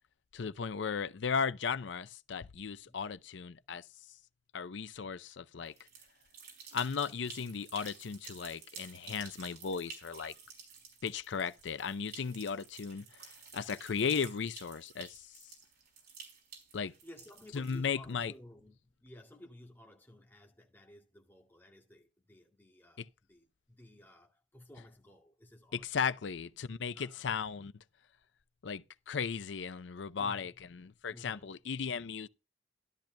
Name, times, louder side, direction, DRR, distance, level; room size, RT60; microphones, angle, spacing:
voice 1, 0.3-3.8 4.5-5.7 6.7-10.3 11.0-15.3 16.7-16.9 17.5-18.3 23.0-23.1 25.7-27.7 28.6-32.3, left 6 dB, 70° left, 0.5 m, -36 dB
sound 1, 5.7-18.1, right 5 dB, 60° right, 5.2 m, -52 dB
voice 2, 17.0-26.2 26.9-27.5 30.2-30.6 31.1-31.5, left 1 dB, 10° left, 2.0 m, -56 dB
13.0 x 12.0 x 2.2 m
head